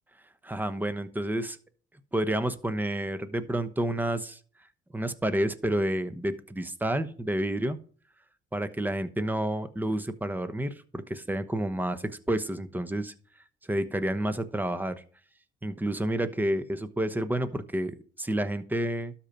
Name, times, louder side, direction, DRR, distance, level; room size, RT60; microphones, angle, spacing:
voice 1, 0.4-1.6 2.1-4.4 4.9-7.8 8.5-13.1 13.7-15.0 15.6-19.1, right 1 dB, 10° right, 12 dB, 1.0 m, -29 dB
12.5 x 4.5 x 5.2 m, 0.44 s
cardioid pair, 90°, 20 cm